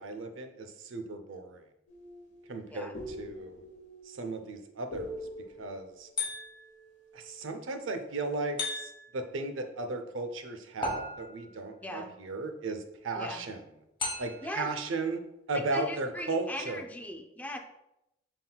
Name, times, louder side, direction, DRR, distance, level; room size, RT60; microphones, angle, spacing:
voice 1, 0.0-1.6 2.5-3.6 4.1-5.2 5.6-6.1 7.1-13.6 14.2-15.2 15.5-16.8, right 3 dB, 85° right, 7 dB, 0.5 m, -36 dB
sound 1, 1.9-7.5, left 1 dB, 90° left, 1.2 m, -45 dB
sound 2, 6.2-6.8 8.6-9.2 10.8-11.6 14.0-14.6, left 2 dB, 25° left, 1.2 m, -35 dB
voice 2, 11.8-12.1 13.1-13.5 14.4-14.7 15.5-17.6, left 1 dB, 10° left, 4 dB, 0.4 m, -39 dB
5.5 x 3.6 x 2.3 m, 0.87 s
head